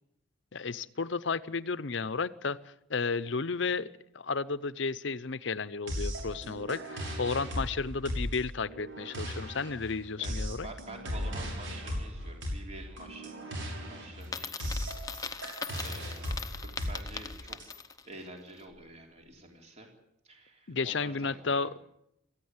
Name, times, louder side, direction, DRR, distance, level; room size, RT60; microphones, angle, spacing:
voice 1, 0.5-2.6 2.9-3.9 4.1-10.7 20.7-21.7, left 4 dB, 60° left, 17 dB, 0.7 m, -33 dB
sound 1, 5.9-17.6, equal, 60° right, 6.7 m, -37 dB
voice 2, 7.4-7.8 10.2-17.8 18.0-19.9 20.2-21.7, right 2 dB, 35° right, 2 dB, 3.7 m, -49 dB
Coin (dropping), 14.2-18.1, left 5 dB, 15° left, 0.8 m, -40 dB
18.0 x 14.5 x 9.7 m, 0.83 s
head